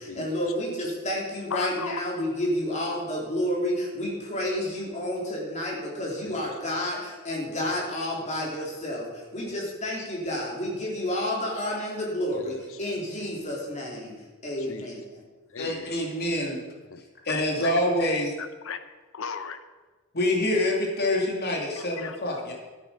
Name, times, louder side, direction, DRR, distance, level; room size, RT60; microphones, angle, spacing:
voice 1, 0.0-14.1 14.4-15.2, left 1 dB, 35° left, -3 dB, 3.7 m, -30 dB
voice 2, 1.5-2.0 6.3-6.4 12.3-12.8 14.7-14.8 15.5-15.9 16.4-16.5 16.9-17.0 17.3-18.8 19.1-19.6 21.8-22.2, left 6 dB, 65° left, 11 dB, 0.9 m, -37 dB
voice 3, 15.6-16.6 17.3-18.3 20.1-22.5, left 1 dB, 50° left, 0 dB, 2.5 m, -26 dB
13.0 x 10.0 x 5.3 m, 1.3 s
head